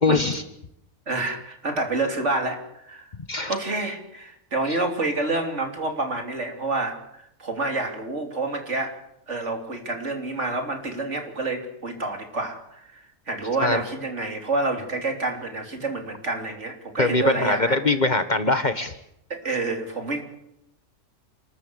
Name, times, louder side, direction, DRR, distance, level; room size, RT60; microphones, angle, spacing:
voice 1, 0.0-0.4 3.3-3.5 13.6-13.8 17.0-18.9, left 2 dB, 35° left, 10 dB, 1.4 m, -22 dB
voice 2, 1.1-3.1 3.5-9.0 9.3-17.8 19.3-20.2, right 2 dB, 65° right, 5 dB, 3.7 m, -28 dB
28.5 x 13.5 x 8.1 m, 0.80 s
omnidirectional pair, 1.3 m